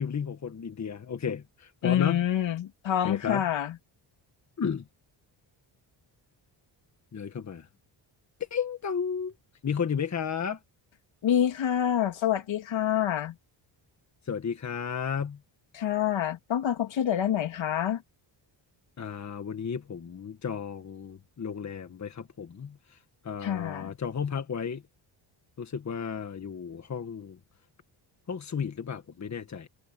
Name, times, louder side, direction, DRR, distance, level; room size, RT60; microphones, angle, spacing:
voice 1, 0.0-2.2 3.0-3.4 4.6-4.8 7.1-7.7 8.5-9.3 9.6-10.6 14.2-15.4 19.0-23.0 23.2-24.8 25.6-27.4 28.3-29.7, left 7 dB, 35° left, 1.7 m, -33 dB
voice 2, 1.8-3.7 11.2-13.3 15.7-18.0 23.4-23.9, left 10 dB, 75° left, 3.3 m, -27 dB
wide cardioid pair, 135°, 46 cm